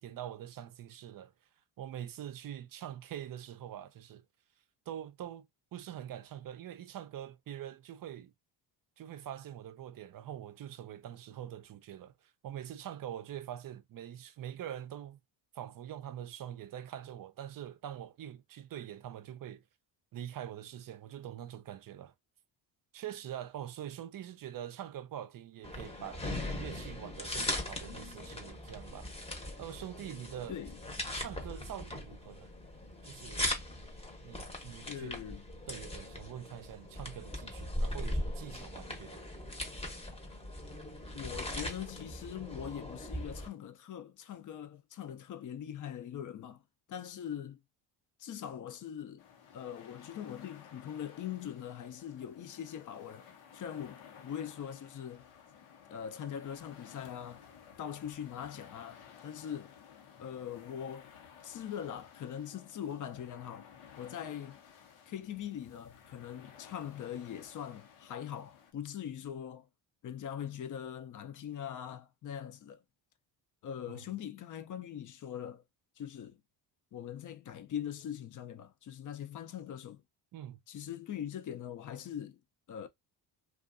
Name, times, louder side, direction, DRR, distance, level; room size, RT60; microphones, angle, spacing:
voice 1, 0.0-1.3 1.8-4.2 4.9-5.5 5.7-8.3 9.0-15.2 15.5-19.6 20.1-22.1 22.9-26.3 26.5-29.1 29.6-30.6 31.1-32.5 33.0-33.5 34.2-35.2 35.7-39.2 73.9-74.1 80.3-80.6, right 11 dB, 45° right, 0.5 m, -44 dB
sound 1, 25.6-43.5, left 1 dB, 10° left, 0.8 m, -39 dB
voice 2, 34.8-35.4 41.1-46.6 46.9-47.6 48.2-49.2 49.5-53.3 53.5-55.3 55.9-57.5 57.8-59.8 60.2-61.1 61.4-63.7 64.0-64.6 65.1-69.7 70.0-72.8 73.6-75.6 76.0-76.4 76.9-80.0 80.7-82.4 82.7-82.9, left 9 dB, 40° left, 0.5 m, -42 dB
sound 2, 49.2-68.7, left 7 dB, 75° left, 0.9 m, -56 dB
2.5 x 2.4 x 2.5 m
cardioid pair, 85°, 49 cm